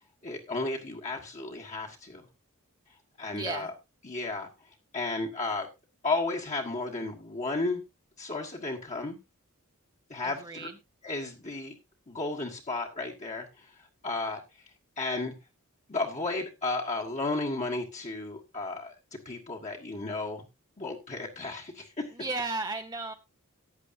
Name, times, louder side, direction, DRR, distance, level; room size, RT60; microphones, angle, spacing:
voice 1, 0.2-2.2 3.2-3.7 4.0-4.5 4.9-5.7 6.0-7.8 8.2-9.2 10.1-10.7 11.0-11.7 12.1-13.7 14.0-14.4 15.0-15.3 15.9-20.4 20.8-22.1, left 3 dB, 35° left, -2 dB, 1.5 m, -33 dB
voice 2, 3.3-3.7 10.2-10.7 22.2-23.1, right 3 dB, 20° right, 4 dB, 0.7 m, -34 dB
14.5 x 10.0 x 2.7 m, 0.24 s
head